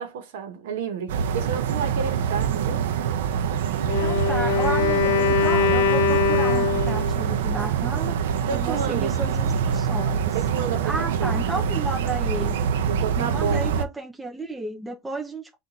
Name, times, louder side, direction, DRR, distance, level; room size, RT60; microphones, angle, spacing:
voice 1, 0.0-2.8 8.5-9.2 10.3-11.4 12.9-13.7, right 6 dB, 70° right, 1.0 m, -30 dB
sound 1, 1.1-13.8, right 7 dB, 85° right, 0.5 m, -25 dB
Wind instrument woodwind instrument, 3.8-7.3, left 5 dB, 70° left, 0.7 m, -22 dB
voice 2, 4.0-8.2 8.5-10.4 10.8-12.5 13.2-15.6, right 2 dB, 5° right, 0.7 m, -32 dB
4.1 x 2.5 x 3.9 m
supercardioid pair, 165°, 0 cm